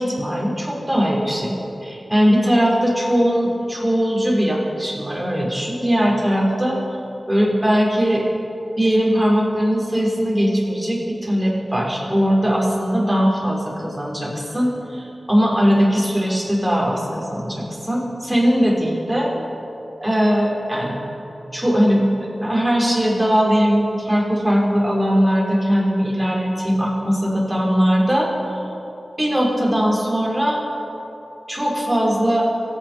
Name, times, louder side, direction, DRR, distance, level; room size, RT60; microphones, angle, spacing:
voice 1, 0.0-1.5 1.8-6.8 7.3-8.3 8.8-19.3 20.0-21.0 21.5-22.0 22.4-28.3 28.6-28.7 29.2-30.6 31.5-32.4, equal, 10° right, -3 dB, 4.1 m, -20 dB
23.5 x 9.2 x 5.2 m, 2.9 s
wide cardioid pair, 70°, 0 cm